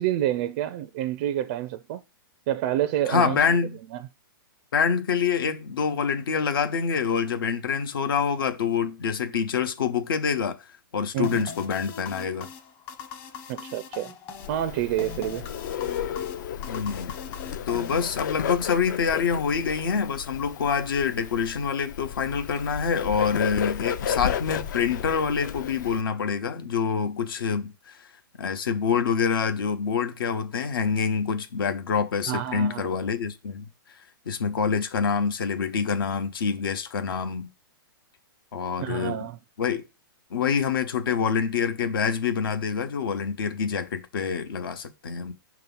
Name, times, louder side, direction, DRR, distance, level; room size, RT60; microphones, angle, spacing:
voice 1, 0.0-2.0 2.5-3.4 3.9-4.1 11.1-11.5 13.5-14.1 14.5-15.5 32.3-32.9 38.8-39.4, right 12 dB, 40° right, 0.4 m, -28 dB
voice 2, 3.1-3.8 4.7-10.6 10.9-12.5 16.7-17.1 17.7-28.0 28.4-33.7 34.3-37.5 38.5-39.2 39.6-39.8 40.3-45.3, left 6 dB, 75° left, 0.9 m, -26 dB
sound 1, 11.2-18.6, left 6 dB, 35° left, 1.1 m, -42 dB
Bird, 14.4-26.0, left 8 dB, 55° left, 0.5 m, -33 dB
5.9 x 2.9 x 5.4 m
hypercardioid pair, 145°, 12 cm